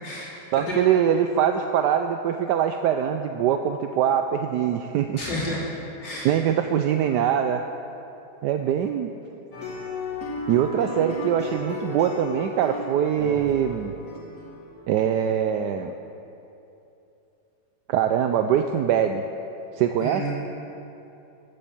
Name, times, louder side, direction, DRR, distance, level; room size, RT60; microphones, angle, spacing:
voice 1, 0.0-0.4 0.7-0.8 5.2-5.6 6.0-6.3 20.0-20.3, equal, 60° left, -7 dB, 3.4 m, -30 dB
voice 2, 0.5-5.2 6.2-7.6 8.4-9.1 10.5-13.9 14.9-15.9 17.9-19.2 19.7-20.3, right 9 dB, 75° right, 7 dB, 1.0 m, -23 dB
sound 1, 9.5-15.1, left 2 dB, 40° left, 2.6 m, -35 dB
15.0 x 8.6 x 7.5 m, 2.9 s
omnidirectional pair, 2.2 m